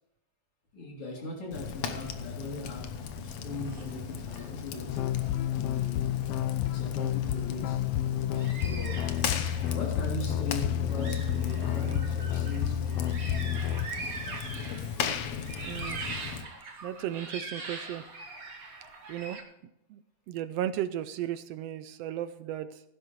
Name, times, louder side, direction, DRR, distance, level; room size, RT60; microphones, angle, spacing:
voice 1, 0.7-5.1 5.5-6.2 6.6-7.9 8.6-9.2 9.7-13.3, left 2 dB, 50° left, 3.9 m, -39 dB
Fire, 1.5-16.4, left 7 dB, 65° left, 2.0 m, -37 dB
sound 1, 3.6-3.9 4.3-4.5 5.4-5.5 8.3-9.8 10.5-10.6 10.9-15.0 15.3-19.4, right 3 dB, 35° right, 1.9 m, -42 dB
sound 2, 4.9-13.9, left 11 dB, 85° left, 1.4 m, -30 dB
voice 2, 15.7-16.0 16.3-16.4 16.8-18.0 19.1-19.4 19.9-22.8, right 11 dB, 80° right, 1.5 m, -35 dB
16.5 x 10.5 x 3.1 m
omnidirectional pair, 3.4 m